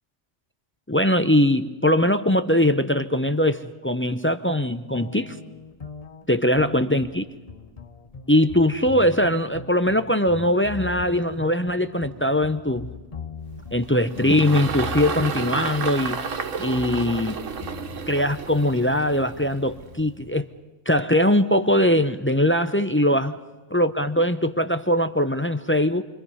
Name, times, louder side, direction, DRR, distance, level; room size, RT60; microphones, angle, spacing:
voice 1, 0.9-5.4 6.3-7.2 8.3-12.9 13.7-16.2 16.6-17.4 18.1-20.5 20.9-23.4 23.7-26.0, left 1 dB, 20° left, 10 dB, 0.4 m, -21 dB
sound 1, 4.9-20.5, left 5 dB, 35° left, 0.9 m, -40 dB
Engine, 13.5-20.1, right 6 dB, 80° right, 1.5 m, -32 dB
28.5 x 23.0 x 5.5 m, 1.2 s
omnidirectional pair, 1.3 m